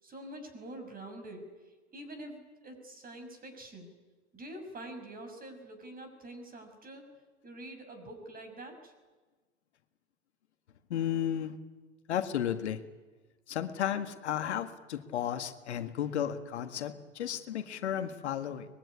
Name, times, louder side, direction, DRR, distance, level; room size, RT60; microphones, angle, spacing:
voice 1, 0.0-1.5 1.9-3.9 4.3-7.0 7.4-8.9, right 1 dB, 25° right, 7 dB, 6.4 m, -46 dB
voice 2, 10.9-11.6 12.1-12.8 13.5-18.7, left 10 dB, 75° left, 9 dB, 1.8 m, -33 dB
23.5 x 21.5 x 9.9 m, 1.3 s
hypercardioid pair, 95°, 34 cm